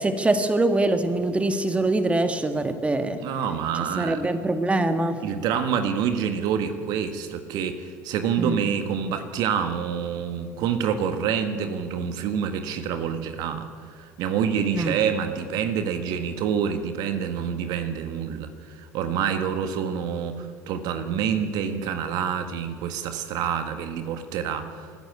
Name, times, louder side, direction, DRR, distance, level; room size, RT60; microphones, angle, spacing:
voice 1, 0.0-3.2 4.0-5.2 8.4-8.6 14.7-15.0, right 2 dB, 15° right, 8 dB, 1.7 m, -23 dB
voice 2, 3.2-4.3 5.2-24.9, right 7 dB, 55° right, 9 dB, 1.6 m, -27 dB
25.5 x 14.5 x 8.8 m, 2.1 s
figure-of-eight pair, 65°, 8 cm